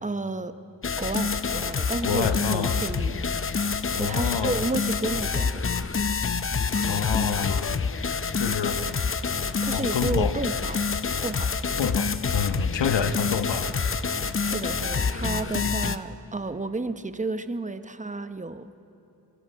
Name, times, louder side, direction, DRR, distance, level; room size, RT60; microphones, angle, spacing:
voice 1, 0.0-0.5 1.0-3.2 3.9-5.6 9.6-10.8 11.2-11.6 14.4-18.7, right 3 dB, 15° right, 10 dB, 0.9 m, -31 dB
sound 1, 0.8-16.0, left 5 dB, 30° left, 0.7 m, -27 dB
voice 2, 2.0-2.8 4.0-4.6 6.8-7.8 8.4-8.8 9.7-10.3 11.8-13.7, left 7 dB, 80° left, 9 dB, 1.2 m, -28 dB
26.0 x 21.0 x 5.7 m, 2.9 s
cardioid pair, 80°, 43 cm